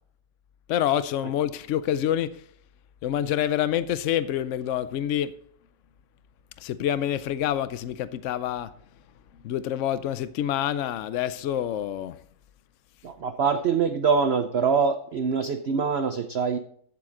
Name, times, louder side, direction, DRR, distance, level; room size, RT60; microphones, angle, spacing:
voice 1, 0.7-2.4 3.0-5.3 6.6-8.7 9.4-12.2, left 11 dB, 85° left, 0.6 m, -27 dB
voice 2, 13.0-16.6, right 5 dB, 75° right, 0.5 m, -24 dB
14.5 x 7.7 x 3.8 m
omnidirectional pair, 1.9 m